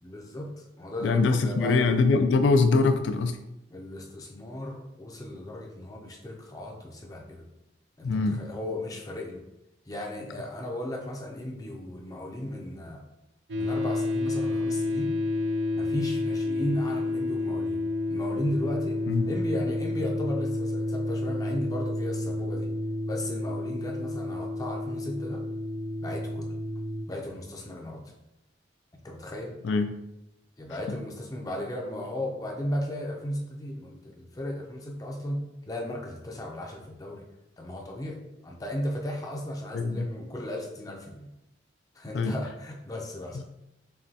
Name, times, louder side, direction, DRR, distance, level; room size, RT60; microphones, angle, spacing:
voice 1, 0.0-1.9 3.7-7.5 8.0-9.4 9.9-13.1 13.5-15.1 15.7-17.8 18.1-22.7 23.1-25.4 26.0-26.5 27.1-28.0 29.0-29.5 30.6-35.4 35.7-37.2 37.6-41.3 41.9-43.4, left 1 dB, 20° left, 1 dB, 0.5 m, -35 dB
voice 2, 1.0-3.4 8.0-8.4 19.1-19.3 29.6-29.9 39.7-40.1 42.1-42.3 43.3-43.4, left 3 dB, 80° left, 8 dB, 0.3 m, -23 dB
sound 1, 13.5-27.1, left 2 dB, 65° right, 0.4 m, -30 dB
5.6 x 2.2 x 2.7 m, 0.90 s
head